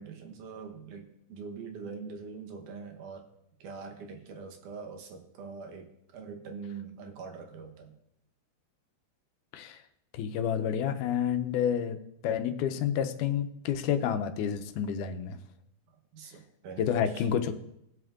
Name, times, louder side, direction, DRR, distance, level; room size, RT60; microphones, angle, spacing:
voice 1, 0.0-3.3 3.6-7.9 16.1-17.3, right 5 dB, 80° right, 3 dB, 2.6 m, -43 dB
voice 2, 10.1-12.0 12.2-15.4 16.8-17.5, left 8 dB, 90° left, 7 dB, 2.2 m, -29 dB
18.5 x 7.7 x 2.5 m, 0.80 s
omnidirectional pair, 3.6 m